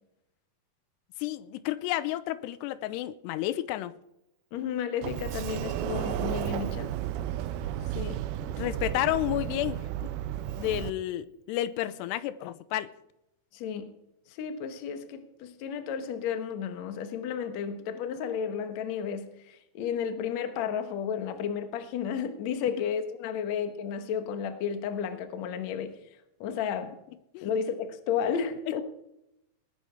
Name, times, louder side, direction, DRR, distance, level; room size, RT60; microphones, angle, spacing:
voice 1, 1.2-4.0 8.4-10.1 10.6-12.9 27.3-27.5, left 14 dB, 85° left, 2.8 m, -31 dB
voice 2, 4.5-6.9 7.9-8.2 13.5-13.9 14.3-26.0 26.4-27.0 27.4-28.8, left 7 dB, 65° left, 1.8 m, -32 dB
Sliding door, 5.0-10.9, right 12 dB, 80° right, 2.5 m, -33 dB
19.5 x 9.8 x 4.6 m
omnidirectional pair, 4.8 m